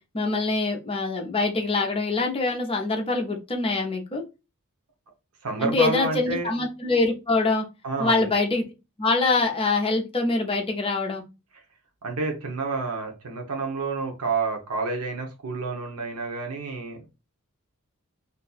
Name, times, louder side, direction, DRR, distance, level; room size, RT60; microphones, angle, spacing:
voice 1, 0.1-4.2 5.6-7.7 8.0-8.7 9.0-11.2, left 3 dB, 25° left, 2 dB, 0.6 m, -24 dB
voice 2, 5.4-6.5 7.8-8.3 12.0-17.1, right 3 dB, 85° right, 2 dB, 0.7 m, -29 dB
2.5 x 2.2 x 3.9 m, 0.28 s
head